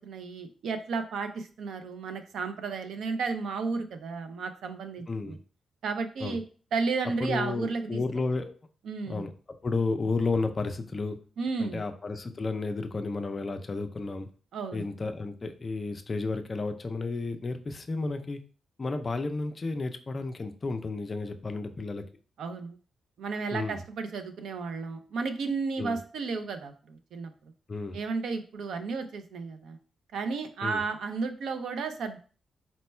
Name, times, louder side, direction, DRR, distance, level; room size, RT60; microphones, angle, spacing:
voice 1, 0.0-5.4 5.8-6.4 6.7-8.0 8.8-9.2 11.4-11.8 14.5-14.9 22.4-22.8 23.2-27.3 27.9-29.8 30.1-32.2, right 4 dB, 80° right, 7 dB, 0.5 m, -33 dB
voice 2, 5.1-5.4 6.2-6.4 7.0-8.5 9.1-9.3 9.6-11.2 11.6-14.3 14.7-18.4 18.8-22.0 23.5-23.8 25.8-26.0 27.7-28.0 30.6-30.8, left 3 dB, 25° left, 7 dB, 0.4 m, -32 dB
4.3 x 2.2 x 4.2 m, 0.40 s
wide cardioid pair, 170°, 0 cm